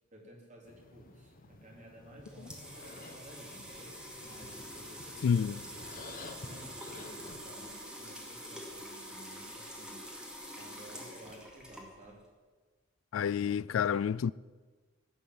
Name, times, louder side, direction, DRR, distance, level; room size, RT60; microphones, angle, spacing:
voice 1, 0.1-4.0 4.2-10.1 10.6-12.2, right 1 dB, 35° right, 3.8 m, -54 dB
sound 1, 0.7-7.4, left 2 dB, 45° left, 1.4 m, -51 dB
sound 2, 2.0-12.3, equal, 5° right, 2.4 m, -46 dB
sound 3, 2.6-7.8, right 6 dB, 75° right, 2.2 m, -58 dB
voice 2, 5.2-5.6 13.1-14.3, left 7 dB, 70° left, 0.3 m, -29 dB
15.5 x 8.9 x 7.9 m
head